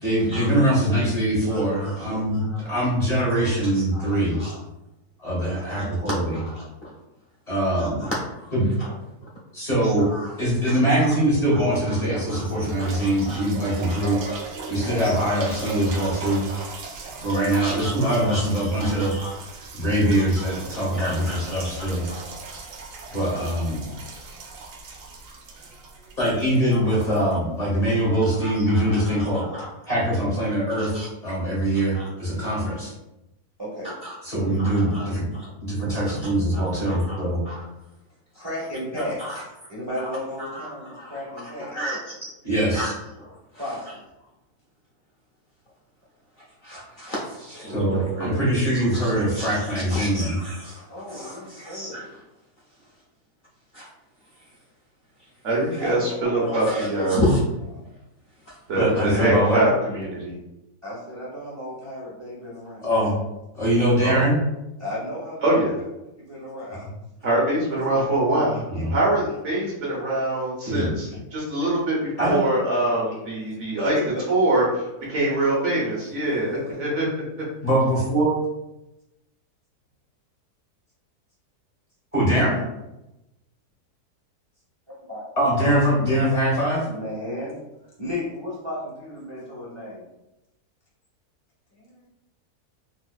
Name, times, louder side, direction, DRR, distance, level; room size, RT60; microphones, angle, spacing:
voice 1, 0.0-4.4 5.2-6.4 7.5-8.1 8.5-8.7 9.5-10.1 10.4-14.2 14.7-16.5 17.2-19.1 19.7-22.1 23.1-23.9 26.2-29.4 29.9-30.9 31.2-32.9 34.2-35.3 35.6-37.4 42.4-42.9 47.6-50.4 58.8-59.6 62.8-63.1 63.5-64.4 68.7-68.9 70.7-70.9 72.2-72.4 77.6-78.3 82.1-82.6 85.4-86.9, right 1 dB, 30° left, -6 dB, 1.1 m, -22 dB
voice 2, 1.5-2.0 2.5-2.6 3.7-4.6 5.7-5.8 6.3-6.9 7.8-8.5 10.1-10.3 10.7-11.1 12.3-13.5 13.9-14.0 14.3-14.4 15.0-16.7 17.5-19.4 20.7-22.2 26.7-26.8 27.1-27.2 28.4-29.7 30.8-31.1 31.9-32.0 34.0-34.1 34.6-35.5 36.5-37.2 37.5-37.6 39.2-39.4 40.4-40.7 41.0-41.2 41.6-42.3 42.7-42.9 43.2-43.3 46.6-47.7 48.7-49.7 49.9-50.8 51.1-52.0 53.7-53.9 56.7-57.4, equal, 85° left, -6 dB, 0.4 m, -34 dB
sound 1, 12.3-28.0 28.7-28.8, right 4 dB, 85° right, 1.2 m, -39 dB
voice 3, 33.6-33.9 34.4-34.6 38.3-39.4 39.7-41.7 43.5-44.0 50.9-52.0 55.6-56.8 57.7-57.8 60.8-62.9 64.8-65.6 66.2-66.9 70.6-70.7 73.8-74.2 85.1-85.2 85.5-85.6 86.8-87.6 88.0-90.1 91.7-92.1, left 1 dB, 30° right, -7 dB, 0.5 m, -34 dB
voice 4, 47.6-48.4 55.4-57.2 58.7-60.3 64.0-64.3 65.4-65.8 67.2-68.6 68.9-74.0 74.3-77.3 82.3-82.4, right 1 dB, 55° right, -5 dB, 1.1 m, -24 dB
4.2 x 2.4 x 2.3 m, 0.93 s
omnidirectional pair, 1.6 m